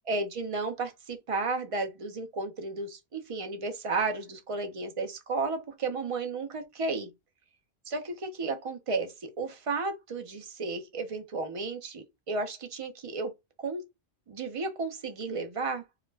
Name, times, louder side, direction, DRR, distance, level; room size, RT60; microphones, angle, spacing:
voice 1, 0.1-7.1 7.9-13.3 13.6-13.8 14.3-15.8, right 3 dB, 40° right, 0.5 m, -33 dB
2.3 x 2.0 x 3.2 m
omnidirectional pair, 1.1 m